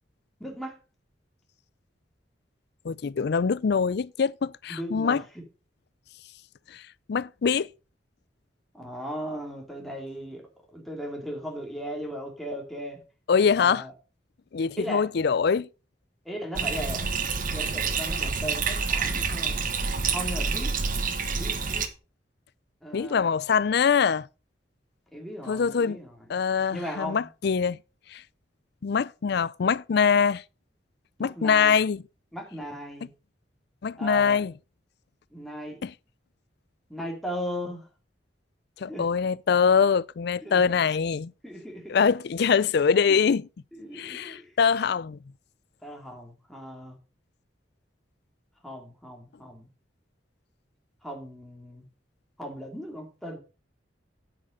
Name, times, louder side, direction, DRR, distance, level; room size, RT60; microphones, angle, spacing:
voice 1, 0.4-0.8 4.7-5.4 8.7-10.4 10.7-13.0 13.6-13.9 14.8-15.1 16.3-17.1 17.5-19.6 20.1-20.7 21.4-21.9 22.8-23.3 25.1-26.4 26.7-27.3 31.2-31.8 32.3-33.1 34.0-34.4 35.3-35.8 36.9-37.9 38.9-39.0 40.4-40.6 41.4-42.0 43.1-43.2 43.7-44.5 45.8-47.0 48.6-49.7 51.0-51.9 52.4-53.4, equal, ahead, 2.5 m, -37 dB
voice 2, 2.8-5.2 6.7-6.8 7.1-7.7 13.3-13.8 14.5-15.7 22.9-24.3 25.5-26.0 26.3-27.8 28.1-28.2 28.8-30.4 31.2-32.0 33.8-34.5 35.8-35.9 38.8-41.3 41.9-43.5 43.9-45.2, left 6 dB, 60° left, 0.4 m, -23 dB
Bathtub (filling or washing), 16.6-21.9, right 5 dB, 50° right, 1.3 m, -28 dB
9.0 x 8.3 x 5.0 m
head